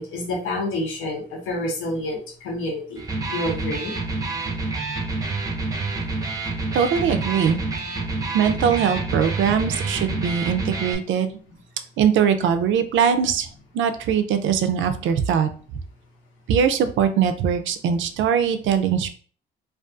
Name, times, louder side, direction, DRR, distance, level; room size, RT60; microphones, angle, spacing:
voice 1, 0.0-3.0 3.3-3.9, left 1 dB, 85° left, -1 dB, 0.8 m, -28 dB
Electric guitar, 3.0-11.0, right 3 dB, 20° right, 0.5 m, -28 dB
voice 2, 6.7-7.6 8.3-11.3 12.0-13.5 13.7-15.5 16.5-19.1, right 7 dB, 75° right, 9 dB, 0.4 m, -21 dB
2.3 x 2.3 x 2.5 m, 0.43 s
cardioid pair, 90°, 20 cm